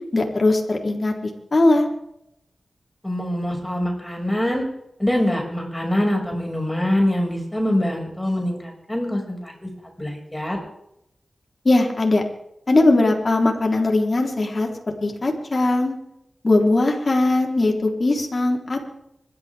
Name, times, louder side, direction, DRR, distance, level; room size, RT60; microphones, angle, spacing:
voice 1, 0.1-1.1 1.5-1.9 11.6-12.2 12.7-14.7 15.0-15.9 16.4-18.9, left 2 dB, 50° left, 1 dB, 4.1 m, -19 dB
voice 2, 3.0-4.7 5.0-9.7 10.0-10.6, left 1 dB, 10° left, 1 dB, 6.4 m, -24 dB
25.5 x 13.5 x 3.7 m, 0.79 s
cardioid pair, 50°, 0 cm